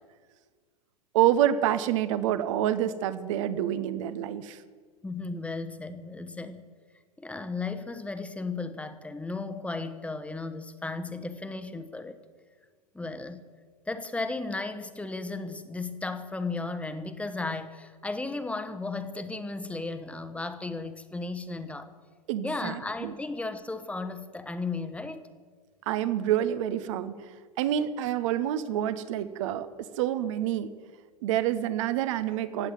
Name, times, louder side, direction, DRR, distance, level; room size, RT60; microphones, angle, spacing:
voice 1, 1.1-4.6 22.3-23.1 25.9-27.1 27.6-30.7 31.2-32.7, right 11 dB, 50° right, 13 dB, 1.0 m, -27 dB
voice 2, 5.0-6.6 7.2-12.2 12.9-13.4 13.9-21.9 22.4-25.2, left 3 dB, 5° left, 10 dB, 1.1 m, -35 dB
16.5 x 8.2 x 9.2 m, 1.5 s
figure-of-eight pair, 100°, 20 cm